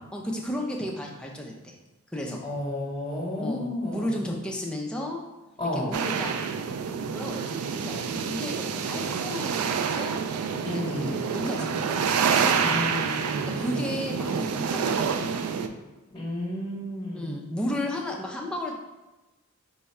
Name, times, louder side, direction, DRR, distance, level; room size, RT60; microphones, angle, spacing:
voice 1, 0.1-1.8 2.1-2.4 3.4-5.2 5.7-6.3 7.0-10.2 10.6-13.0 13.6-15.6 17.1-18.7, left 1 dB, 5° left, -1 dB, 0.4 m, -34 dB
voice 2, 2.4-4.1 5.6-5.9 10.6-11.2 12.6-13.7 16.1-17.3, left 1 dB, 20° left, -7 dB, 0.9 m, -32 dB
sound 1, 5.9-15.7, right 6 dB, 90° right, 0.3 m, -28 dB
4.7 x 2.2 x 4.1 m, 1.1 s
head